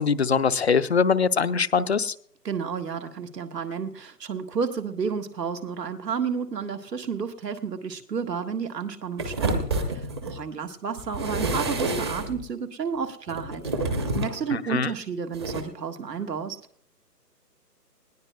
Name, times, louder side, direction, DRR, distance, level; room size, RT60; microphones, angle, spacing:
voice 1, 0.0-2.1 14.5-14.9, left 5 dB, 45° left, 13 dB, 0.5 m, -22 dB
voice 2, 2.4-13.6 14.1-16.6, right 6 dB, 80° right, 7 dB, 1.6 m, -31 dB
sound 1, 9.2-10.4 11.0-12.4 13.3-14.4 15.3-15.6, right 2 dB, 15° right, 0.8 m, -28 dB
20.0 x 18.0 x 2.3 m, 0.64 s
hypercardioid pair, 155°, 49 cm